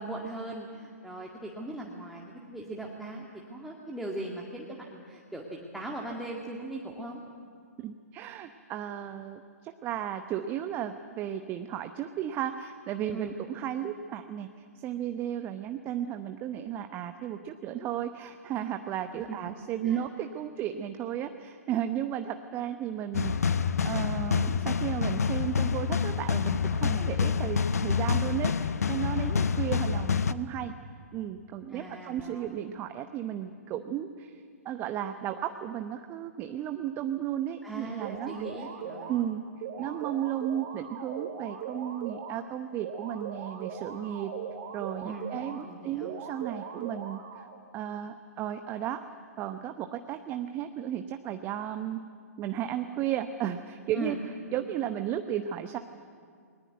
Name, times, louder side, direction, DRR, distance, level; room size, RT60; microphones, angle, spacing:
voice 1, 0.0-7.2 13.1-13.3 19.8-20.0 26.8-27.1 31.7-32.6 37.6-39.1 45.0-45.3 45.6-46.1 53.9-54.2, right 1 dB, ahead, -3 dB, 2.0 m, -39 dB
voice 2, 7.8-23.5 23.8-30.7 31.1-38.4 39.1-39.4 39.8-44.3 44.7-47.5 47.7-49.0 49.4-52.0 52.4-54.2 54.5-55.8, right 10 dB, 25° right, 8 dB, 0.9 m, -34 dB
sound 1, 23.1-30.3, left 6 dB, 70° left, 0.8 m, -27 dB
sound 2, 38.0-39.2 39.6-42.4 42.8-45.6 46.0-47.6, right 7 dB, 40° right, 2.4 m, -40 dB
21.0 x 19.5 x 9.4 m, 2.1 s
figure-of-eight pair, 120°, 9 cm